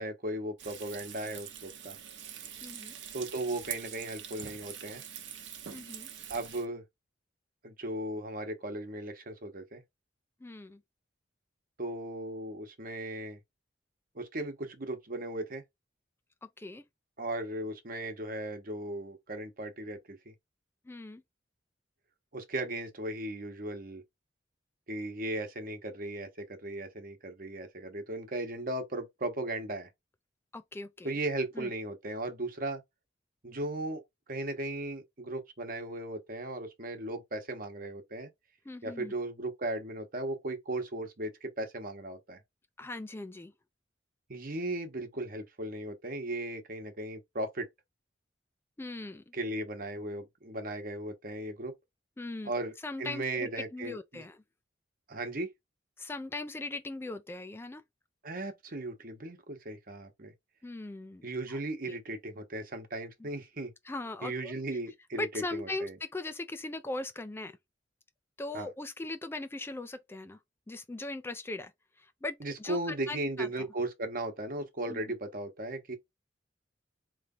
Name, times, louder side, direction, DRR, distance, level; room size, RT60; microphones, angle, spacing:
voice 1, 0.0-2.0 3.1-5.0 6.3-6.8 7.6-9.8 11.8-13.4 14.1-15.6 17.2-20.3 22.3-24.0 24.9-29.9 31.0-32.8 33.4-34.0 34.3-38.3 38.8-42.4 44.3-47.7 49.3-51.7 52.4-52.7 53.0-54.2 55.1-55.5 58.2-60.3 61.2-63.7 64.2-65.9 68.5-68.7 72.4-76.0, right 2 dB, 50° right, 1.1 m, -37 dB
Frying (food), 0.6-6.6, right 9 dB, 70° right, 0.9 m, -44 dB
voice 2, 2.6-3.0 5.7-6.1 10.4-10.8 16.6-16.8 20.9-21.2 30.5-31.1 31.6-31.7 38.7-39.1 42.8-43.5 48.8-49.2 52.2-52.5 52.8-54.4 56.0-57.8 60.6-61.2 61.5-61.6 61.8-62.0 63.9-64.8 65.1-67.6 68.4-70.4 70.7-71.7 72.0-73.5 74.9-75.0, left 2 dB, 15° left, 0.3 m, -39 dB
4.0 x 3.2 x 3.8 m
head